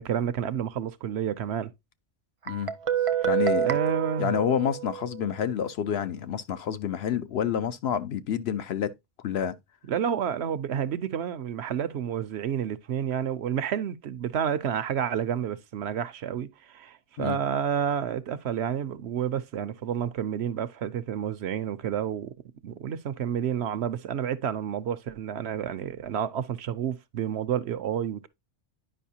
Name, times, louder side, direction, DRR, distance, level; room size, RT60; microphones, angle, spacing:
voice 1, 0.0-1.7 3.2-3.3 3.6-4.3 9.9-22.3 22.6-28.3, right 8 dB, 65° right, 0.8 m, -30 dB
Guitar, 2.5-5.3, right 10 dB, 35° right, 0.6 m, -28 dB
voice 2, 3.2-3.8 4.2-8.9 9.2-9.6 17.2-17.4, left 8 dB, 65° left, 0.8 m, -28 dB
10.0 x 5.4 x 2.7 m
omnidirectional pair, 1.2 m